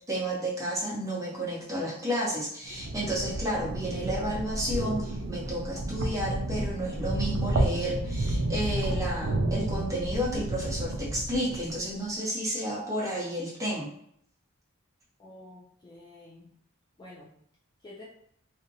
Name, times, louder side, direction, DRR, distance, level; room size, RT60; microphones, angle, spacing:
voice 1, 0.1-13.9, equal, 15° right, -6 dB, 0.8 m, -31 dB
sound 1, 2.6-11.9, right 1 dB, 65° right, 0.4 m, -31 dB
voice 2, 15.2-16.6 17.0-17.3 17.8-18.0, left 1 dB, 20° left, -5 dB, 0.4 m, -49 dB
2.5 x 2.1 x 2.7 m, 0.68 s
head